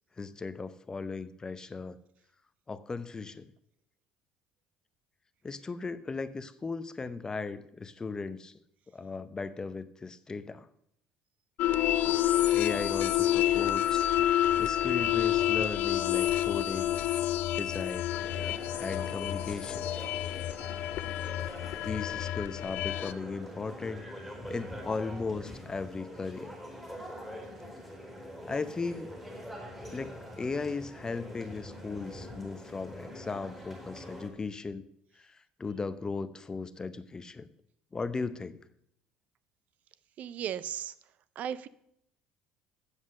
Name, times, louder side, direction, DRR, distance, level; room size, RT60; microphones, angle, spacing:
voice 1, 0.2-2.0 2.7-3.5 5.4-8.5 8.9-10.7 12.5-14.1 14.6-16.9 17.5-18.1 18.7-19.9 21.8-24.0 24.5-26.6 28.4-29.1 29.9-34.8 35.6-37.5 37.9-38.6, left 4 dB, 25° left, 14 dB, 0.6 m, -37 dB
sound 1, 11.6-23.1, left 12 dB, 65° left, 0.4 m, -28 dB
sound 2, 18.1-34.3, equal, 5° right, 4.2 m, -44 dB
voice 2, 40.2-40.9 41.4-41.7, right 9 dB, 55° right, 17 dB, 0.4 m, -35 dB
8.1 x 7.4 x 6.4 m, 0.75 s
supercardioid pair, 80°, 3 cm